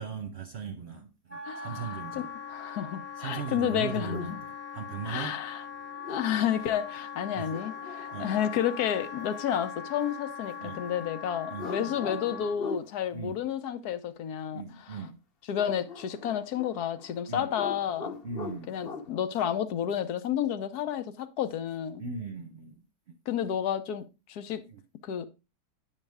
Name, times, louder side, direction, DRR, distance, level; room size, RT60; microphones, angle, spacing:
voice 1, 0.0-2.3 3.2-5.4 7.3-7.6 8.1-8.4 10.6-10.8 11.5-12.0 13.1-13.4 14.5-15.2 17.3-17.5 18.2-18.8 22.0-23.2 24.6-24.8, right 6 dB, 50° right, 1.0 m, -39 dB
Wind instrument woodwind instrument, 1.3-12.6, left 7 dB, 10° left, 0.7 m, -41 dB
voice 2, 1.5-1.8 2.5-4.4 5.1-5.6 6.1-15.0 15.5-18.1 18.7-22.0 23.3-24.6 25.0-25.3, left 9 dB, 75° left, 1.2 m, -31 dB
sound 1, 3.8-4.4 5.9-6.5 7.5-8.6 11.6-12.9 15.6-17.2 17.4-19.1, left 4 dB, 40° left, 1.0 m, -41 dB
9.3 x 5.5 x 3.5 m
omnidirectional pair, 1.7 m